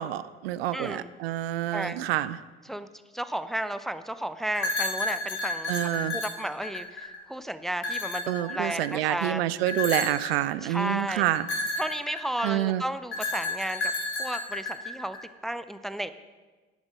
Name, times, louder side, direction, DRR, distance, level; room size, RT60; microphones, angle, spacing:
voice 1, 0.0-2.4 5.7-6.1 8.3-11.5 12.4-12.8, right 13 dB, 75° right, 16 dB, 0.5 m, -28 dB
voice 2, 0.7-1.1 1.7-2.0 2.7-2.9 3.1-9.5 10.6-11.3 11.8-13.9 14.2-15.2 15.4-16.1, right 1 dB, ahead, 12 dB, 0.5 m, -33 dB
sound 1, 4.5-7.2 7.8-9.0 9.7-10.3 11.3-12.6 13.1-15.2, left 2 dB, 40° left, 2.7 m, -31 dB
10.5 x 8.2 x 5.3 m, 1.3 s
figure-of-eight pair, 55°, 31 cm